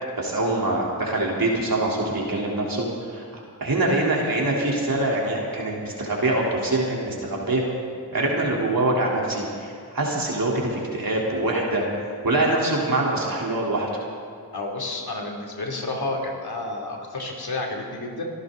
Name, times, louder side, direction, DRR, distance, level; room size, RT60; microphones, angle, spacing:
voice 1, 0.2-2.9 3.1-3.2 3.6-7.6 8.1-11.8 12.2-13.9, right 2 dB, 55° right, -3 dB, 3.7 m, -24 dB
voice 2, 14.5-18.2, left 2 dB, 65° left, 0 dB, 3.1 m, -30 dB
25.0 x 12.0 x 4.0 m, 2.3 s
cardioid pair, 40°, 41 cm